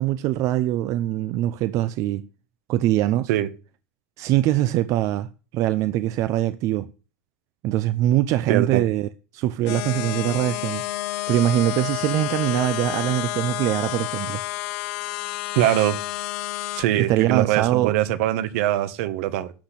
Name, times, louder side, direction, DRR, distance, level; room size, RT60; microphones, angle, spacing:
voice 1, 0.0-2.3 2.7-3.3 4.2-6.9 7.6-10.9 11.3-14.4 17.0-17.9, right 13 dB, 40° right, 0.7 m, -23 dB
voice 2, 8.5-8.8 15.5-16.0 16.7-19.5, right 13 dB, 65° right, 1.4 m, -22 dB
sound 1, 9.7-16.8, left 17 dB, 65° left, 1.3 m, -30 dB
12.0 x 6.1 x 8.4 m
supercardioid pair, 155°, 8 cm